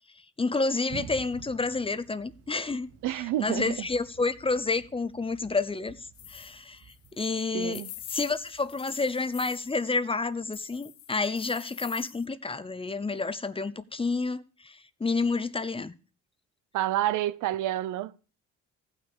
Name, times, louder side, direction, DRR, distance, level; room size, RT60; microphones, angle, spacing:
voice 1, 0.1-7.8 8.1-16.0, left 3 dB, 20° left, 0.6 m, -30 dB
Thunder, 0.9-10.3, right 7 dB, 50° right, 1.3 m, -50 dB
voice 2, 3.0-3.7 7.5-7.9 16.7-18.2, right 13 dB, 85° right, 0.6 m, -29 dB
sound 1, 6.1-9.8 10.5-12.2, left 13 dB, 70° left, 0.6 m, -46 dB
15.5 x 6.1 x 4.9 m
cardioid pair, 90°, 30 cm